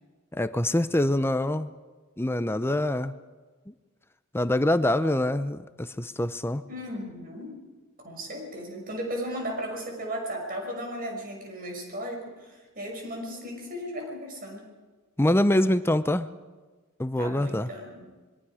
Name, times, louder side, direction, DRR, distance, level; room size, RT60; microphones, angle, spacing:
voice 1, 0.3-1.7 2.2-3.1 3.7-3.8 4.3-6.6 15.2-16.3 17.0-17.7, left 1 dB, 10° left, 12 dB, 0.7 m, -25 dB
voice 2, 6.7-7.6 8.0-14.7 17.2-18.1, equal, 45° right, 1 dB, 6.1 m, -36 dB
26.5 x 22.5 x 5.0 m, 1.3 s
head